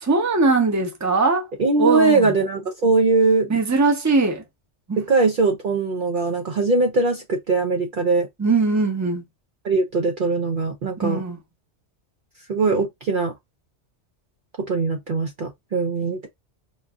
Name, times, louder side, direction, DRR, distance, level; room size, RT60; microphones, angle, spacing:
voice 1, 0.0-1.5 1.8-2.3 3.5-4.4 4.9-5.0 8.4-9.2 11.0-11.4, right 3 dB, 15° right, 0.7 m, -20 dB
voice 2, 1.6-3.5 5.0-8.3 9.6-11.2 12.5-13.3 14.7-16.3, right 3 dB, 55° right, 0.7 m, -21 dB
3.9 x 2.6 x 2.3 m
omnidirectional pair, 1.2 m